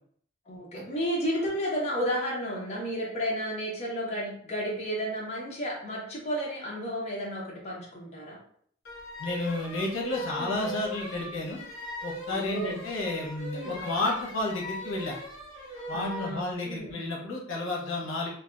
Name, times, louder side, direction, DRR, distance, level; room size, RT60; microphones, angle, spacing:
voice 1, 0.5-8.4 10.4-10.6 12.3-12.8 13.5-13.9 15.9-16.9, equal, 35° left, -4 dB, 0.6 m, -32 dB
sound 1, 8.8-16.4, equal, 55° left, 1.2 m, -40 dB
voice 2, 9.2-11.6 12.0-15.2 15.9-18.3, left 2 dB, 80° left, -2 dB, 0.7 m, -31 dB
2.7 x 2.1 x 2.3 m, 0.62 s
head